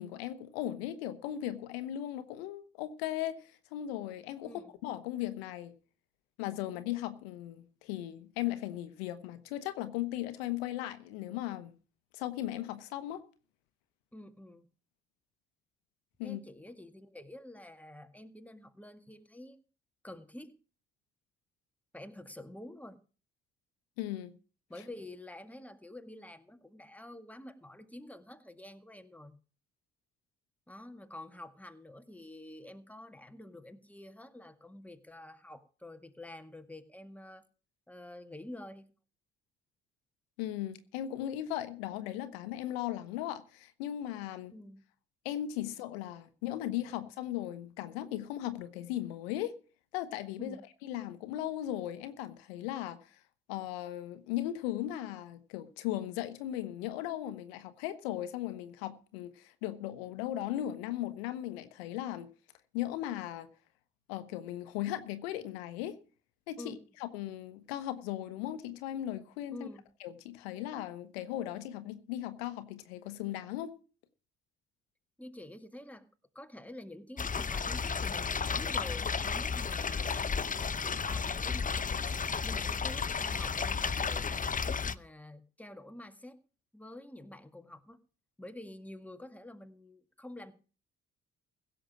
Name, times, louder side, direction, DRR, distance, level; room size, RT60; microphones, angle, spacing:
voice 1, 0.0-4.5 4.8-5.7 6.4-11.7 12.1-13.2 16.2-16.4 24.0-24.3 40.4-44.5 45.2-49.5 49.9-50.6 50.8-53.2 53.5-62.3 62.7-63.5 64.1-66.0 66.5-66.7 67.0-69.7 70.0-73.7, left 13 dB, 90° left, 1.0 m, -37 dB
voice 2, 14.1-14.7 16.2-19.6 20.0-20.5 21.9-23.0 24.7-29.4 30.7-37.4 37.9-38.9 44.5-44.8 50.4-50.6 66.6-66.8 69.5-69.9 75.2-76.1 76.4-82.1 82.4-86.4 86.7-88.0 88.4-90.5, left 1 dB, 5° left, 1.9 m, -48 dB
sound 1, 77.2-84.9, left 5 dB, 25° left, 0.7 m, -33 dB
16.0 x 7.2 x 6.1 m
hypercardioid pair, 50°, 30 cm